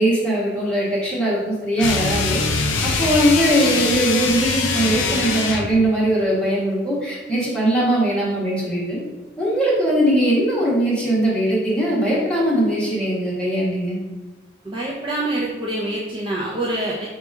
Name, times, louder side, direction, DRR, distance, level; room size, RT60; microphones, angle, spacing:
voice 1, 0.0-2.4 2.8-9.0 9.4-14.0, right 1 dB, 5° left, -8 dB, 1.2 m, -20 dB
sound 1, 1.8-5.8, left 4 dB, 70° left, 0.4 m, -22 dB
voice 2, 14.6-17.1, right 1 dB, 25° right, -4 dB, 0.4 m, -25 dB
4.0 x 2.3 x 4.6 m, 1.2 s
head